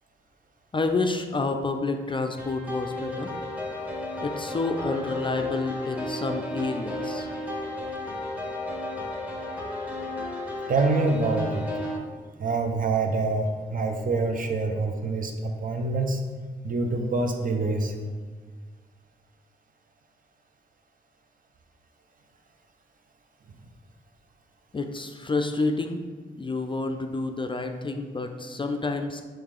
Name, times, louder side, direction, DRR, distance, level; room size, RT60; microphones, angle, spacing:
voice 1, 0.7-3.3 4.2-7.3 24.7-26.0 26.4-29.2, left 3 dB, 25° left, 5 dB, 0.4 m, -29 dB
sound 1, 2.4-12.0, left 1 dB, 10° right, 1.2 m, -33 dB
voice 2, 10.7-11.7 12.4-16.2 16.6-17.9, right 3 dB, 45° right, 4 dB, 0.6 m, -26 dB
4.6 x 3.1 x 3.7 m, 1.5 s
supercardioid pair, 50°, 19 cm